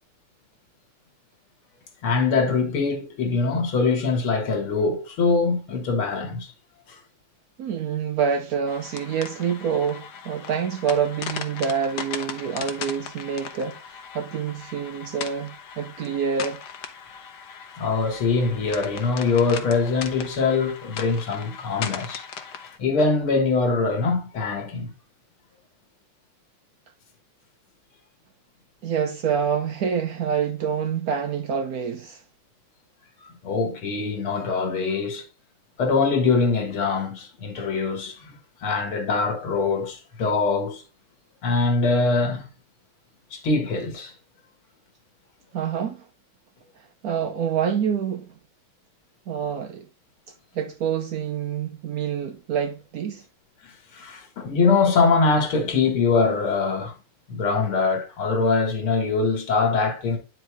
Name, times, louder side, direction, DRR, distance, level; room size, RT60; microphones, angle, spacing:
voice 1, 2.0-6.5 6.9-7.0 17.8-22.2 22.8-24.9 33.4-35.2 35.8-38.3 38.6-40.8 41.4-42.5 43.3-44.1 53.6-56.9 57.3-60.2, left 4 dB, 75° left, 2.3 m, -23 dB
voice 2, 7.6-16.6 28.8-32.2 45.5-46.1 47.0-48.3 49.3-49.9 50.5-53.2, right 7 dB, 80° right, 0.8 m, -27 dB
sound 1, 8.7-22.8, left 7 dB, 60° left, 1.2 m, -38 dB
9.2 x 4.7 x 3.4 m
omnidirectional pair, 2.3 m